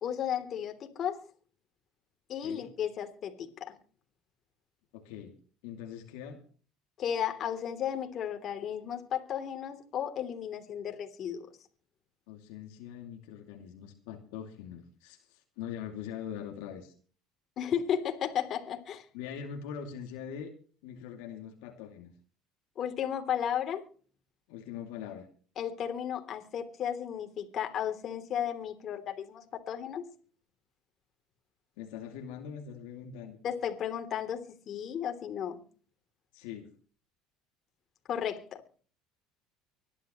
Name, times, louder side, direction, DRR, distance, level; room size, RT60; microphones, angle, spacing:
voice 1, 0.0-1.2 2.3-3.8 7.0-11.5 17.6-19.1 22.8-23.8 25.6-30.0 33.4-35.6 38.1-38.6, left 9 dB, 50° left, 3.1 m, -34 dB
voice 2, 4.9-5.3 5.6-6.4 12.3-16.9 19.1-20.5 20.8-22.1 24.5-25.3 31.8-33.4 36.3-36.7, left 8 dB, 80° left, 2.5 m, -42 dB
25.0 x 11.5 x 3.1 m
supercardioid pair, 95°, 0 cm